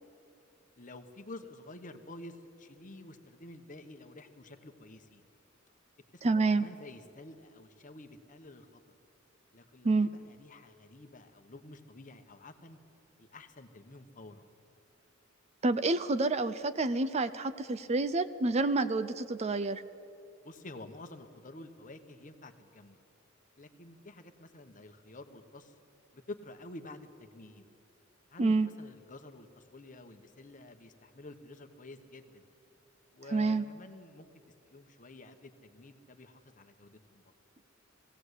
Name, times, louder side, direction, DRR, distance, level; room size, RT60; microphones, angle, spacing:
voice 1, 0.8-5.2 6.1-8.8 9.5-12.8 13.2-14.4 20.4-23.0 23.6-25.7 26.1-27.7 28.3-32.5 33.1-34.3 34.6-37.2, left 2 dB, 40° left, 8 dB, 1.1 m, -50 dB
voice 2, 6.2-6.6 9.8-10.1 15.6-19.8 28.4-28.7 33.3-33.6, right 3 dB, 35° right, 13 dB, 0.5 m, -28 dB
19.0 x 16.5 x 8.2 m, 2.6 s
head